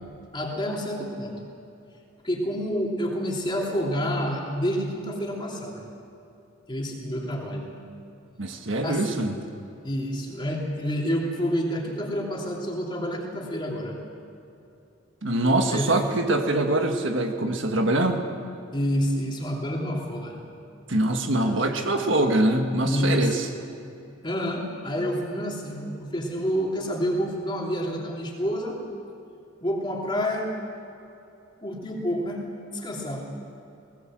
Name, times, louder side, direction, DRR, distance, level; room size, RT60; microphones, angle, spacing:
voice 1, 0.3-1.4 2.2-5.8 6.7-7.7 8.8-9.0 9.8-14.0 15.7-15.9 16.2-16.3 18.7-20.4 21.4-21.5 22.8-23.4 24.2-28.8 29.6-30.5 31.6-32.4 32.7-33.3, equal, 25° left, -1 dB, 3.0 m, -28 dB
voice 2, 8.4-9.4 15.2-18.2 20.9-23.5, right 1 dB, 65° right, 4 dB, 1.6 m, -23 dB
19.0 x 19.0 x 7.7 m, 2.7 s
head